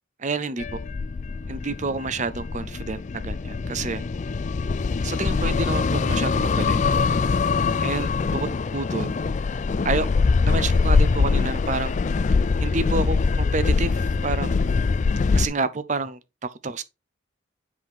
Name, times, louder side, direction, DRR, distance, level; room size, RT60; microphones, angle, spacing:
voice 1, 0.2-0.8 1.5-4.0 5.0-6.8 7.8-9.2 9.8-10.1 10.4-12.0 12.6-14.7 15.3-16.2 16.6-16.8, right 4 dB, 40° right, 0.7 m, -29 dB
sound 1, 0.6-15.5, left 4 dB, 40° left, 0.3 m, -23 dB
7.7 x 5.9 x 3.5 m
head